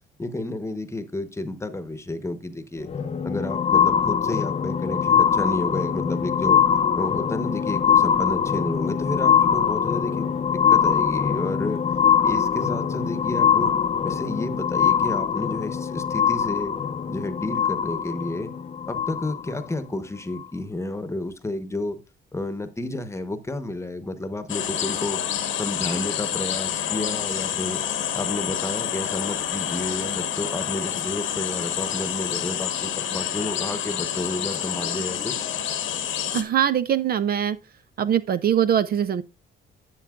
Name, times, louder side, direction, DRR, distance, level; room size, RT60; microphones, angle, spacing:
voice 1, 0.2-2.9 3.2-6.6 6.9-11.8 12.2-13.7 14.0-16.8 17.1-18.5 18.9-22.0 22.3-25.2 25.6-27.8 28.1-35.5, left 2 dB, 15° left, 1.0 m, -31 dB
sound 1, 2.8-19.6 20.4-20.5, left 8 dB, 30° left, 0.6 m, -22 dB
sound 2, 24.5-36.4, left 10 dB, 85° left, 1.2 m, -28 dB
voice 2, 36.3-37.6 38.0-39.2, right 9 dB, 50° right, 0.4 m, -22 dB
11.0 x 6.7 x 2.4 m
cardioid pair, 90°, 20 cm